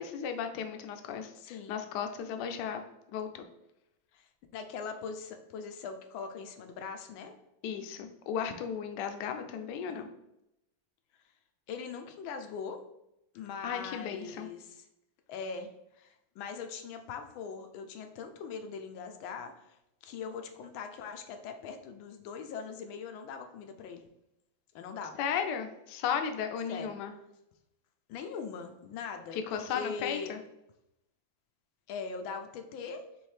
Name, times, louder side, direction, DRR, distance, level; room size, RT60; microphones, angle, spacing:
voice 1, 0.0-2.8 3.1-3.5 7.6-10.1 13.6-14.5 25.2-27.1 29.3-30.4, left 7 dB, 75° left, 6 dB, 1.0 m, -35 dB
voice 2, 1.4-1.8 4.1-4.3 4.5-7.3 9.9-10.1 11.7-12.8 13.3-14.8 15.3-15.7 15.9-24.1 24.7-25.2 26.7-26.9 28.1-30.3 31.9-33.0, left 5 dB, 90° left, 6 dB, 1.4 m, -41 dB
4.4 x 3.4 x 3.2 m, 0.86 s
omnidirectional pair, 2.1 m